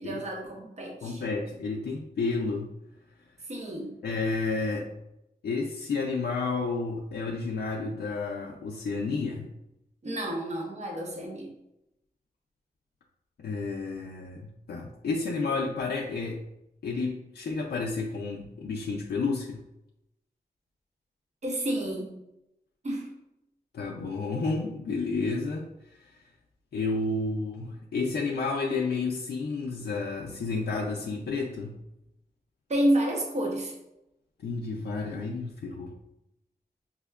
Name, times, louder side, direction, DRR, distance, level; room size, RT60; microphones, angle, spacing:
voice 1, 0.0-1.2 3.5-3.9 10.0-11.5 21.4-22.2 22.8-23.1 32.7-33.7, right 1 dB, 45° right, -1 dB, 0.7 m, -30 dB
voice 2, 1.0-2.7 4.0-4.9 5.4-9.5 13.4-16.4 16.8-19.6 23.7-26.2 26.7-31.8 34.4-36.0, left 3 dB, 75° left, -1 dB, 0.4 m, -31 dB
5.5 x 2.1 x 2.3 m, 0.87 s
wide cardioid pair, 105°, 17 cm